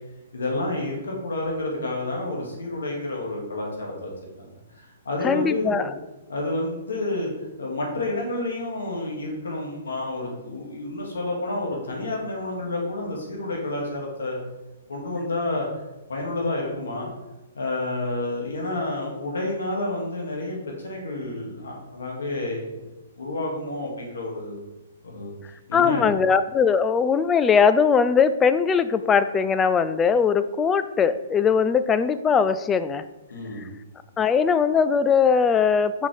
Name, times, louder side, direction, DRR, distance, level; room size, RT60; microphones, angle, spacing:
voice 1, 0.3-4.1 4.4-5.9 6.3-7.3 7.6-14.4 14.9-15.7 16.1-17.1 17.5-22.8 23.1-24.6 25.0-25.3 25.7-26.1 33.3-33.8, left 2 dB, 85° left, -2 dB, 2.2 m, -29 dB
voice 2, 5.2-5.9 25.7-33.0 34.2-36.1, left 6 dB, 15° left, 12 dB, 0.3 m, -20 dB
6.0 x 5.7 x 3.4 m, 1.0 s
hypercardioid pair, 140°, 0 cm